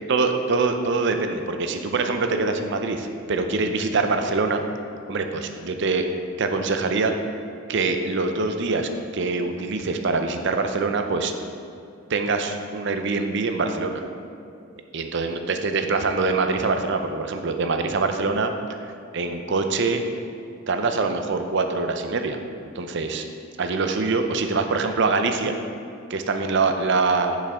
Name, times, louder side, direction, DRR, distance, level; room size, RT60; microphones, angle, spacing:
voice 1, 0.1-4.6 5.1-6.1 6.4-7.1 7.7-11.3 12.1-14.0 14.9-18.5 19.1-20.0 20.7-22.4 22.7-23.3 23.6-25.6 26.1-27.4, right 3 dB, 60° right, 6 dB, 0.6 m, -24 dB
10.0 x 5.4 x 3.7 m, 2.5 s
head